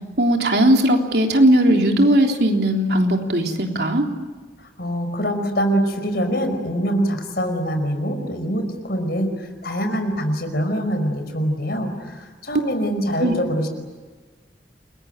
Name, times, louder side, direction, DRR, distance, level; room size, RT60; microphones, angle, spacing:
voice 1, 0.2-4.1 13.2-13.3, right 1 dB, 60° right, 3 dB, 3.5 m, -17 dB
voice 2, 4.8-13.7, equal, 55° left, 7 dB, 5.1 m, -24 dB
29.5 x 22.0 x 9.1 m, 1.4 s
head